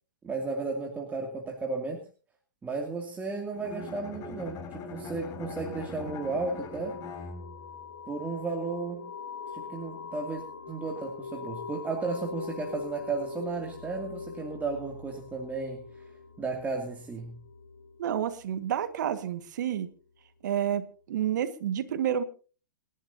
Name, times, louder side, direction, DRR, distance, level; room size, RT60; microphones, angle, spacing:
voice 1, 0.2-2.0 2.6-7.0 8.1-9.1 9.5-15.8 16.4-17.4, right 3 dB, 15° right, 1 dB, 2.5 m, -34 dB
Bowed string instrument, 3.5-7.8, left 3 dB, 35° left, 3.3 m, -41 dB
sound 1, 4.9-19.3, left 5 dB, 70° left, 2.9 m, -43 dB
voice 2, 18.0-19.9 20.4-22.2, right 10 dB, 65° right, 11 dB, 1.8 m, -29 dB
28.0 x 11.0 x 2.8 m, 0.38 s
hypercardioid pair, 110°, 11 cm